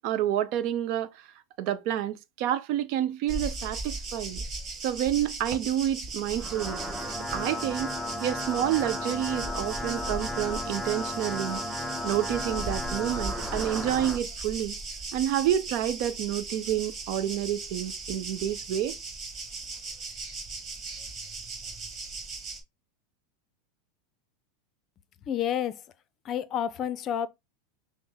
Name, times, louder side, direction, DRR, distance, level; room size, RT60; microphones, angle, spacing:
voice 1, 0.0-1.3 1.6-4.4 4.8-6.8 7.1-7.9 8.2-11.6 12.0-14.8 15.1-18.9, right 11 dB, 55° right, 0.7 m, -29 dB
sound 1, 3.3-22.6, right 3 dB, 30° right, 1.8 m, -37 dB
sound 2, 6.2-14.2, left 1 dB, 5° right, 0.7 m, -35 dB
voice 2, 25.3-25.8 26.2-27.3, left 9 dB, 35° left, 0.5 m, -29 dB
5.9 x 2.0 x 3.8 m
supercardioid pair, 125°, 0 cm